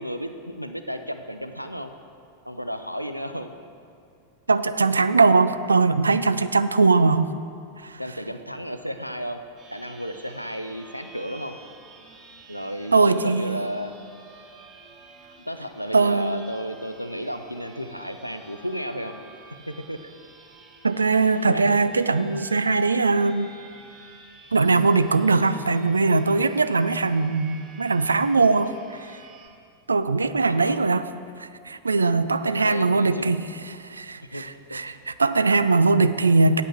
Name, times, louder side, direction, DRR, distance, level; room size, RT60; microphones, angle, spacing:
voice 1, 0.0-1.9 2.5-3.5 8.0-9.4 9.7-11.6 12.5-13.9 15.5-19.2 19.7-20.0 21.2-21.9 30.4-30.8 32.4-33.3 34.3-34.4 34.7-34.8, equal, 90° left, 8 dB, 0.4 m, -33 dB
voice 2, 4.5-7.3 7.8-8.0 12.9-13.7 15.9-16.5 20.8-23.5 24.5-29.1 29.9-31.0 31.4-36.6, right 3 dB, 75° right, 13 dB, 0.3 m, -21 dB
sound 1, 9.6-29.5, right 3 dB, 25° right, 1.6 m, -49 dB
8.3 x 5.4 x 7.4 m, 2.4 s
figure-of-eight pair, 90°, 0 cm